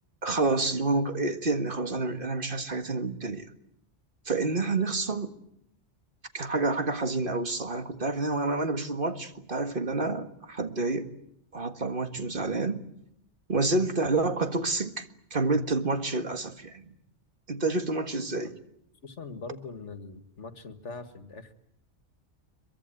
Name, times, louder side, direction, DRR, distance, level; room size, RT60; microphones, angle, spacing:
voice 1, 0.2-3.5 4.3-5.3 6.3-11.1 11.5-12.9 13.5-15.1 15.3-16.9 17.5-18.6, right 3 dB, 50° right, 2.0 m, -28 dB
voice 2, 19.0-21.5, left 4 dB, 80° left, 2.2 m, -42 dB
24.0 x 23.5 x 9.1 m
omnidirectional pair, 1.2 m